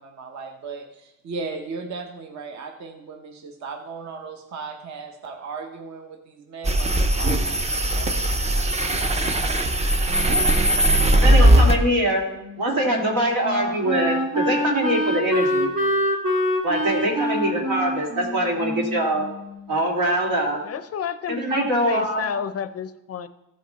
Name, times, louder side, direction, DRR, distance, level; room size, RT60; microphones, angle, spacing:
voice 1, 0.0-8.3, right 4 dB, 55° right, 4 dB, 0.8 m, -37 dB
sound 1, 6.6-11.8, right 1 dB, 20° right, 0.5 m, -19 dB
voice 2, 10.2-10.7 11.2-12.2 12.6-15.7 16.6-19.3 19.7-20.6 21.3-22.2, right 1 dB, 90° right, -2 dB, 2.8 m, -23 dB
Wind instrument woodwind instrument, 12.4-19.7, equal, 70° right, 1.7 m, -26 dB
voice 3, 20.6-23.3, left 8 dB, 45° left, 13 dB, 0.4 m, -30 dB
15.0 x 5.2 x 4.0 m, 0.91 s
wide cardioid pair, 170°, 35 cm